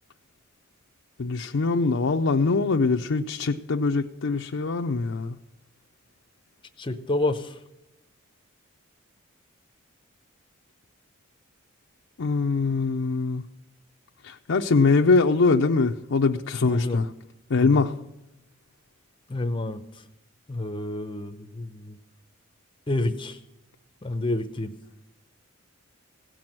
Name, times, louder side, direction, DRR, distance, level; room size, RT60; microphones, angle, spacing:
voice 1, 1.2-5.4 12.2-13.4 14.2-17.0 17.5-17.9, left 4 dB, 65° left, 0.5 m, -23 dB
voice 2, 6.8-7.6 16.7-17.0 17.6-17.9 19.3-20.0 20.5-22.0 22.9-23.4 24.0-24.7, left 2 dB, 25° left, 0.6 m, -29 dB
17.0 x 6.1 x 8.8 m
head